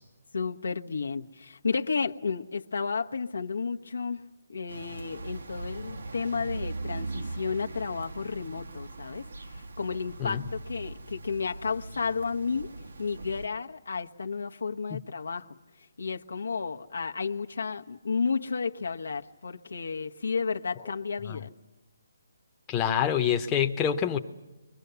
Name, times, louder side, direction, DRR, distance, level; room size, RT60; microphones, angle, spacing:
voice 1, 0.3-4.2 4.5-12.7 13.0-15.5 16.0-21.5, left 5 dB, 80° left, 4 dB, 1.1 m, -32 dB
sound 1, 4.7-13.5, right 2 dB, 75° right, 1.5 m, -40 dB
voice 2, 22.7-24.2, left 9 dB, 15° left, 4 dB, 0.9 m, -26 dB
29.0 x 23.0 x 6.9 m, 1.1 s
hypercardioid pair, 155°, 0 cm